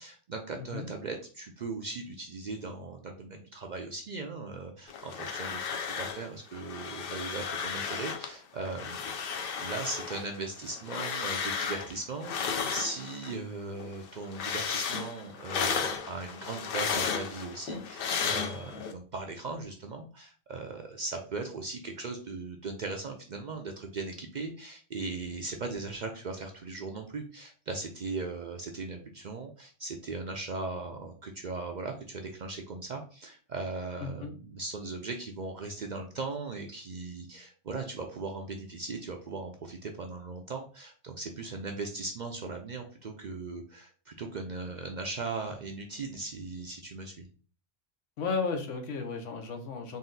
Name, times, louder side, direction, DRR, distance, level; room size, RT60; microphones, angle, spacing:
voice 1, 0.0-9.2 9.6-47.3, right 3 dB, 55° right, 3 dB, 0.5 m, -38 dB
voice 2, 0.6-0.9 34.0-34.3 48.2-50.0, left 4 dB, 85° left, 5 dB, 1.1 m, -34 dB
sound 1, 4.9-6.3 6.5-8.3 8.7-13.4 13.7-18.9, left 6 dB, 60° left, 0.7 m, -34 dB
4.0 x 2.4 x 3.8 m, 0.39 s
omnidirectional pair, 1.2 m